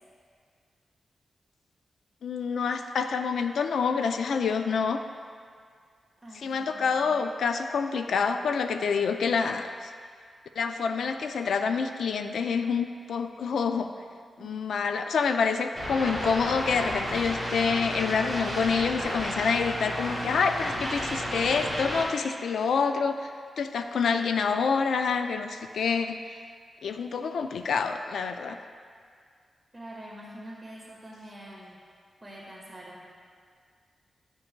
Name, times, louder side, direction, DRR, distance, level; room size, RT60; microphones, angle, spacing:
voice 1, 2.2-5.0 6.4-9.9 10.6-13.9 14.4-23.3 23.6-26.2 26.8-28.6, left 5 dB, 85° left, 7 dB, 0.3 m, -27 dB
voice 2, 6.2-7.1 14.4-14.6 29.7-31.8 32.2-33.0, right 1 dB, 10° right, -6 dB, 1.7 m, -45 dB
sound 1, 15.7-22.0, equal, 35° left, 1.5 m, -32 dB
9.7 x 5.3 x 2.2 m, 2.1 s
wide cardioid pair, 110°, 0 cm